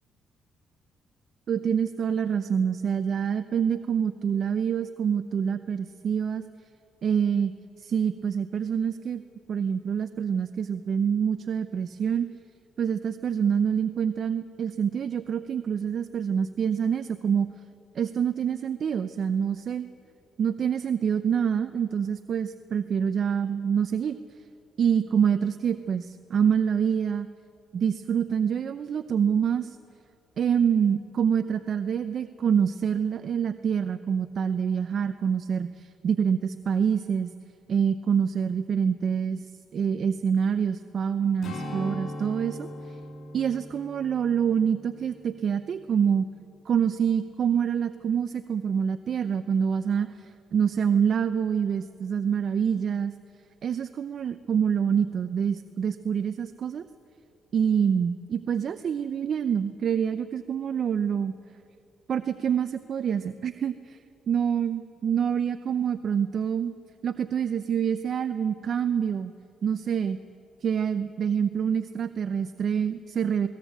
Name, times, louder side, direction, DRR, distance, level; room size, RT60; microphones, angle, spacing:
voice 1, 1.5-6.4 7.0-7.5 7.8-9.2 9.5-12.3 12.8-17.5 17.9-19.9 20.4-24.2 24.8-27.3 27.7-29.8 30.4-37.3 37.7-39.5 39.7-43.0 43.3-46.3 46.7-53.1 53.6-56.9 57.5-61.3 62.1-64.0 64.3-66.7 67.0-69.3 69.6-70.2 70.6-73.5, right 7 dB, 55° right, 11 dB, 0.6 m, -26 dB
Strum, 41.4-46.1 46.5-46.7, left 1 dB, 60° left, 3.4 m, -40 dB
21.5 x 18.5 x 8.3 m, 2.6 s
cardioid pair, 90°, 0 cm